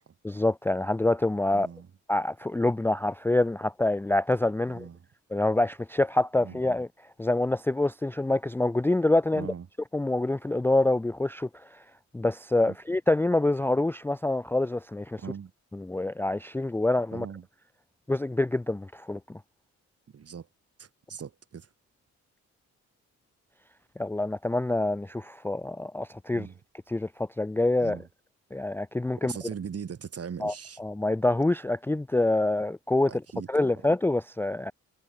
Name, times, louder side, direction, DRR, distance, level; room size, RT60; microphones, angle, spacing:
voice 1, 0.2-1.7 2.1-4.9 5.3-6.9 7.2-9.5 9.9-11.8 12.1-15.2 15.8-17.3 18.1-19.4 24.0-26.5 26.9-28.0 28.5-29.3 30.4-30.5 30.8-33.1 33.5-34.7, left 2 dB, 5° left, 0.4 m, -26 dB
voice 2, 1.5-1.9 4.6-5.1 6.4-6.6 9.3-9.7 12.7-12.8 15.2-15.5 17.1-17.5 20.1-20.5 20.8-21.7 26.3-26.6 27.8-28.1 29.2-30.8 33.1-33.7, right 7 dB, 55° right, 6.2 m, -40 dB
cardioid pair, 95°, 29 cm